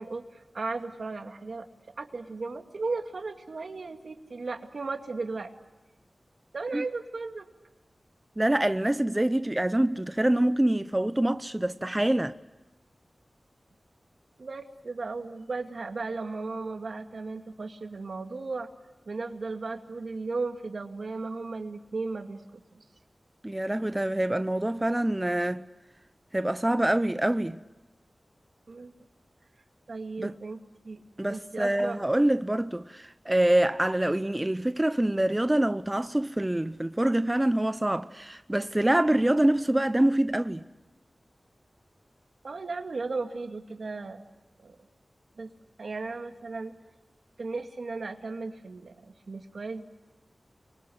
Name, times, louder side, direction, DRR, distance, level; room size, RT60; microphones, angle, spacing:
voice 1, 0.0-1.7 2.0-5.5 6.5-7.5 14.4-18.7 19.1-22.8 28.7-28.9 29.9-30.6 30.8-31.0 31.3-32.0 42.4-44.3 44.6-44.8 45.4-45.5 45.8-46.7 47.4-49.8, right 3 dB, 80° right, 2.4 m, -35 dB
voice 2, 8.4-12.3 23.4-25.7 26.3-27.6 30.2-30.3 31.2-40.6, right 1 dB, 20° right, 0.8 m, -25 dB
30.0 x 24.0 x 8.0 m
cardioid pair, 45°, 0 cm